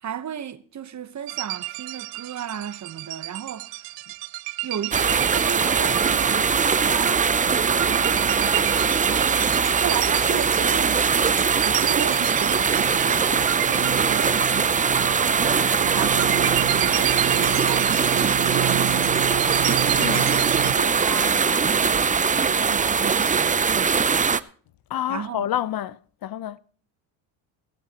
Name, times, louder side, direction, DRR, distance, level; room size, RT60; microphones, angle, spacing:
voice 1, 0.0-3.9 4.6-7.3 7.6-22.1 22.4-24.1 25.1-25.5, right 9 dB, 40° right, 1.1 m, -35 dB
sound 1, 1.3-20.7, right 20 dB, 90° right, 0.7 m, -30 dB
sound 2, 4.9-24.4, right 6 dB, 15° right, 0.5 m, -21 dB
voice 2, 20.0-20.3 24.9-26.6, left 11 dB, 50° left, 0.7 m, -28 dB
16.5 x 13.0 x 2.9 m
cardioid pair, 95°, 45 cm